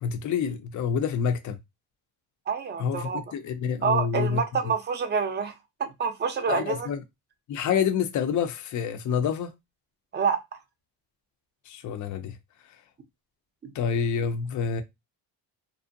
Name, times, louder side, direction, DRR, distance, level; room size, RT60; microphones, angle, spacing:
voice 1, 0.0-1.6 2.8-4.7 6.5-7.0 7.5-9.5 11.7-12.4 13.7-14.8, left 7 dB, 40° left, 0.5 m, -28 dB
voice 2, 2.5-3.2 3.8-5.5 5.8-6.9 10.1-10.4 13.6-13.7, right 6 dB, 20° right, 0.6 m, -27 dB
2.5 x 2.1 x 2.6 m
supercardioid pair, 75°, 48 cm